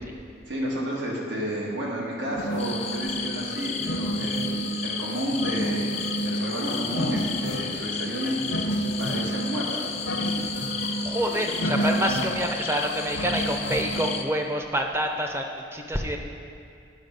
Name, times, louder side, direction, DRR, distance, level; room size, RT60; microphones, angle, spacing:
voice 1, 0.5-9.8 10.2-10.5, right 1 dB, 80° right, -3 dB, 1.6 m, -31 dB
sound 1, 2.4-14.2, right 1 dB, 85° left, 0.7 m, -31 dB
sound 2, 2.6-14.2, left 6 dB, 35° left, 0.4 m, -34 dB
voice 2, 11.0-16.2, equal, 15° right, 3 dB, 0.6 m, -27 dB
9.2 x 6.0 x 5.2 m, 2.4 s
head